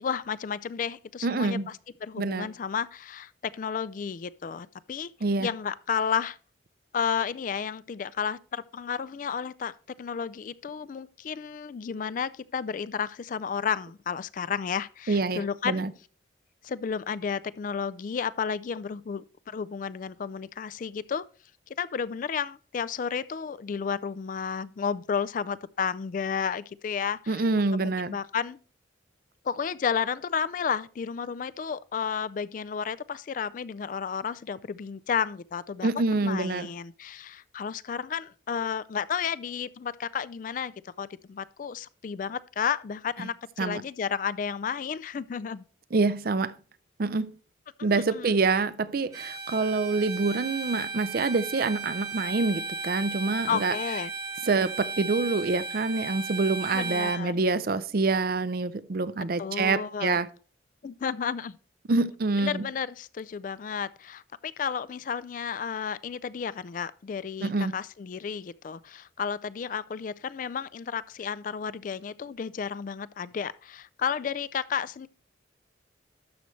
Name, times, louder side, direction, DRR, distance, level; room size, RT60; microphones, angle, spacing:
voice 1, 0.0-5.1 5.4-6.4 6.9-9.7 10.0-15.8 16.6-21.3 21.7-27.4 27.7-28.6 29.4-45.6 47.8-48.4 53.5-54.1 56.7-57.4 59.4-60.2 60.8-61.6 62.4-75.1, left 6 dB, 45° left, 0.3 m, -32 dB
voice 2, 1.2-1.7 2.2-2.5 5.2-5.5 15.1-15.9 27.3-28.2 35.8-36.7 43.6-43.8 45.9-46.5 47.0-47.3 47.8-53.8 54.4-60.3 61.9-62.7 67.4-67.7, right 3 dB, 55° right, 0.5 m, -26 dB
Bowed string instrument, 49.1-57.2, right 4 dB, 20° right, 1.3 m, -35 dB
12.0 x 6.4 x 3.2 m
head